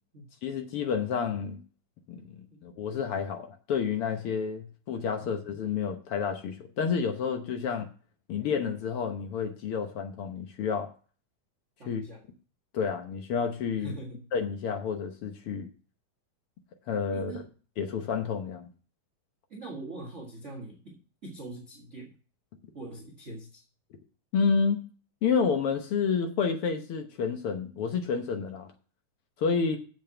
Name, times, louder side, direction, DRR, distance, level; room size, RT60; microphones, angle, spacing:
voice 1, 0.4-1.6 2.1-2.3 2.6-7.9 8.3-10.9 11.8-12.0 12.7-13.9 14.3-15.7 16.9-17.3 17.8-18.7 24.3-24.9 25.2-28.7 29.4-29.8, left 6 dB, 75° left, 1.3 m, -29 dB
voice 2, 11.8-12.2 13.8-14.3 17.1-17.5 19.5-22.1 22.7-23.6 29.6-29.8, right 2 dB, 35° right, 1.2 m, -43 dB
7.7 x 7.2 x 6.9 m
omnidirectional pair, 4.0 m